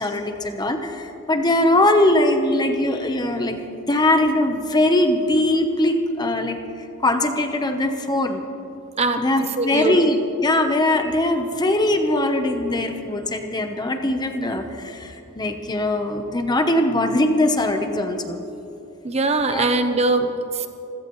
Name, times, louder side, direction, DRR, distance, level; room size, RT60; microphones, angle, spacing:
voice 1, 0.0-3.6 3.9-6.6 7.0-8.4 9.2-18.4 19.5-19.6, left 1 dB, 20° left, 6 dB, 0.9 m, -21 dB
voice 2, 9.6-9.9 19.0-20.7, right 2 dB, 30° right, 7 dB, 0.8 m, -21 dB
25.5 x 16.5 x 3.1 m, 2.9 s
head